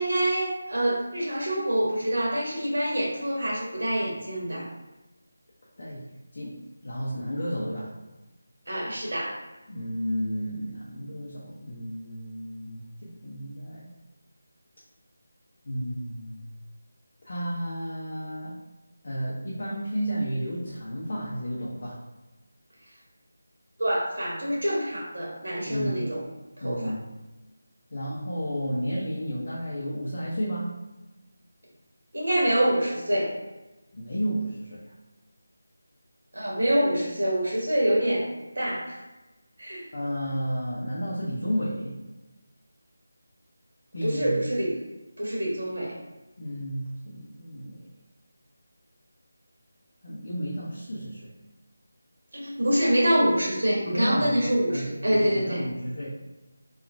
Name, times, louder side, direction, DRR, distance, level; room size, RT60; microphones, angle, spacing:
voice 1, 0.0-4.7 8.7-9.4 23.8-26.2 26.6-26.9 32.1-33.4 36.3-38.3 38.5-39.0 39.6-39.9 44.0-44.8 45.2-45.9 52.3-55.6, right 1 dB, 75° right, -4 dB, 1.3 m, -26 dB
voice 2, 5.8-7.9 9.7-13.9 15.6-16.4 17.2-18.6 19.0-22.0 25.7-26.0 26.6-27.1 27.9-30.7 33.9-34.8 39.9-42.0 43.9-44.4 46.4-47.8 50.0-51.3 53.9-56.2, equal, 40° left, -7 dB, 0.6 m, -32 dB
2.9 x 2.3 x 2.5 m, 1.1 s
figure-of-eight pair, 180°, 0 cm